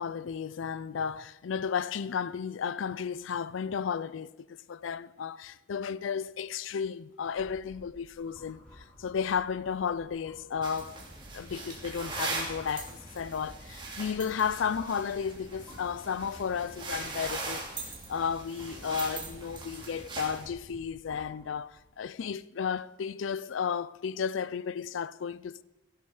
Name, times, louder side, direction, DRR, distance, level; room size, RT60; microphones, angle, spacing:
voice 1, 0.0-4.3 4.7-11.0 11.3-17.7 18.1-25.6, left 6 dB, 85° left, 0.4 m, -33 dB
sound 1, 7.2-21.9, equal, 10° left, 3.8 m, -55 dB
sound 2, 10.6-20.5, right 3 dB, 25° right, 2.8 m, -40 dB
17.5 x 11.5 x 4.9 m
head